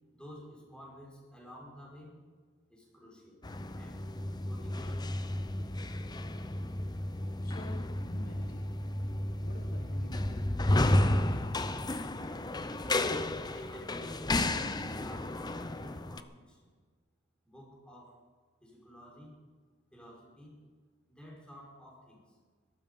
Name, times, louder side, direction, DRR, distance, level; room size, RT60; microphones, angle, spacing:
voice 1, 0.1-2.1 2.7-3.4 3.7-4.0 4.4-5.1 13.5-16.7 17.5-18.2 18.6-19.4 19.9-20.6 21.1-22.4, equal, 5° left, -3 dB, 5.3 m, -51 dB
sound 1, 3.4-16.2, left 1 dB, 20° left, 0.7 m, -32 dB
voice 2, 7.4-8.7 9.4-11.2, left 1 dB, 50° left, 1 dB, 1.5 m, -49 dB
21.0 x 12.5 x 5.5 m, 1.5 s
head